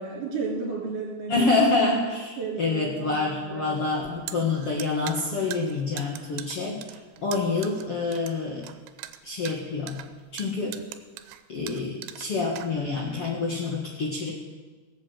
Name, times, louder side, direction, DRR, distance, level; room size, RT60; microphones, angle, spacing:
voice 1, 0.0-1.6 2.4-4.6, right 4 dB, 55° right, -2 dB, 4.6 m, -34 dB
voice 2, 1.3-8.6 9.2-10.0 10.3-10.8 11.5-14.3, left 3 dB, 50° left, -3 dB, 2.0 m, -27 dB
sound 1, 3.9-13.1, right 12 dB, 85° right, 2.8 m, -42 dB
18.5 x 7.9 x 8.0 m, 1.3 s
omnidirectional pair, 4.7 m